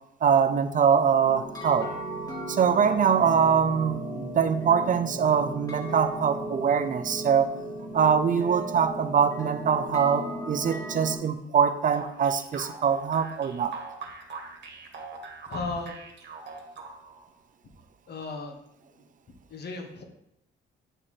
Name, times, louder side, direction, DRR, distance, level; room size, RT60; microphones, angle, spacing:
voice 1, 0.2-1.9 2.5-7.5 7.9-13.8, right 7 dB, 40° right, 10 dB, 0.6 m, -23 dB
sound 1, 1.2-11.2, right 1 dB, 20° left, 1.6 m, -36 dB
sound 2, 11.9-17.3, right 4 dB, 60° right, 1.3 m, -41 dB
voice 2, 15.5-16.0 18.1-18.6 19.5-20.0, left 3 dB, 55° left, 4 dB, 1.2 m, -35 dB
8.9 x 3.0 x 4.2 m, 0.81 s
cardioid pair, 90°, 20 cm